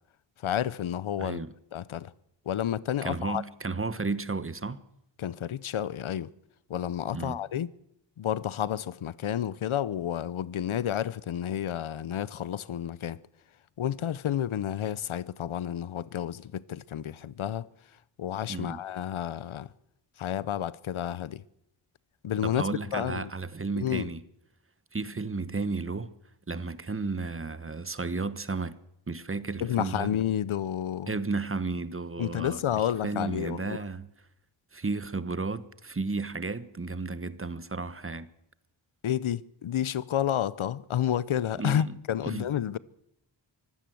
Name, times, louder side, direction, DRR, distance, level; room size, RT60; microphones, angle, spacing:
voice 1, 0.4-1.4 1.7-2.1 2.5-3.4 5.2-6.3 6.7-7.7 8.2-13.2 13.8-17.7 18.2-19.7 20.2-21.4 22.2-22.6 22.9-23.3 23.8-24.1 29.6-31.1 32.2-33.8 39.0-42.8, left 10 dB, 85° left, 0.8 m, -30 dB
voice 2, 1.2-1.5 3.0-4.8 7.1-7.4 18.5-18.8 22.4-24.2 24.9-26.1 26.5-28.7 29.1-30.1 31.1-32.6 33.0-34.1 34.7-38.3 41.6-42.0 42.2-42.5, right 3 dB, 25° right, 1.1 m, -33 dB
24.0 x 15.5 x 7.8 m
wide cardioid pair, 100°, 47 cm